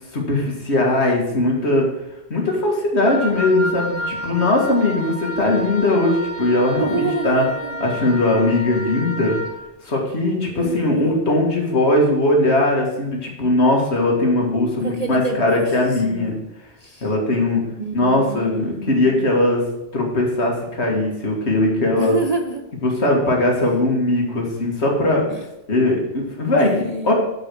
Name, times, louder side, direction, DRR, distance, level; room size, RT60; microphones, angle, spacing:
voice 1, 0.1-1.9 2.3-7.4 7.8-9.3 9.8-16.3 17.0-17.6 17.9-19.6 19.9-22.2 22.8-25.2 25.7-26.7 27.0-27.1, left 2 dB, 65° left, -1 dB, 2.2 m, -19 dB
Wind instrument woodwind instrument, 3.1-9.6, equal, 90° left, 1.5 m, -31 dB
voice 2, 6.6-7.9 10.4-11.3 14.6-16.4 16.8-17.1 17.8-19.3 21.9-22.7 25.3-25.5 26.6-27.1, right 3 dB, 45° right, 4 dB, 0.5 m, -28 dB
8.3 x 5.4 x 6.3 m, 0.90 s
omnidirectional pair, 1.3 m